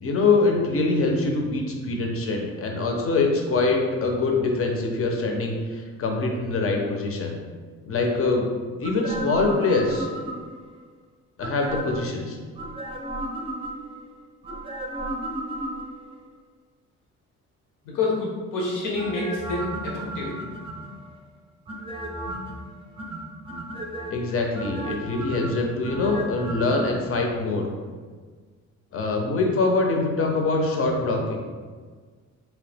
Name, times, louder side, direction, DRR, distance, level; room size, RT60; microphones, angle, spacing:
voice 1, 0.0-7.3 7.9-8.4 8.8-10.1 11.4-12.4 24.1-27.7 28.9-31.4, left 3 dB, 50° left, 1 dB, 0.7 m, -24 dB
sound 1, 8.8-10.7 11.4-12.1 12.6-14.0 14.4-16.1 18.9-21.1 21.7-22.6 23.0-24.1 24.5-26.9 27.2-27.3, right 1 dB, 20° right, 0.6 m, -34 dB
voice 2, 17.8-20.3, left 3 dB, 80° left, -3 dB, 1.0 m, -28 dB
3.2 x 3.0 x 3.4 m, 1.5 s
cardioid pair, 90°, 30 cm